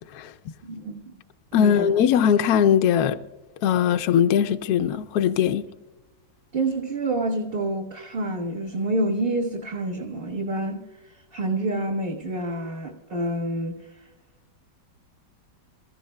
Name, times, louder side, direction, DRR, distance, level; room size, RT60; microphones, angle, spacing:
voice 1, 0.6-1.2 1.6-1.9 6.5-14.0, right 2 dB, 35° right, 1.4 m, -28 dB
voice 2, 1.5-3.2 3.6-5.6, left 8 dB, 70° left, 1.0 m, -20 dB
26.5 x 14.5 x 2.2 m
omnidirectional pair, 1.9 m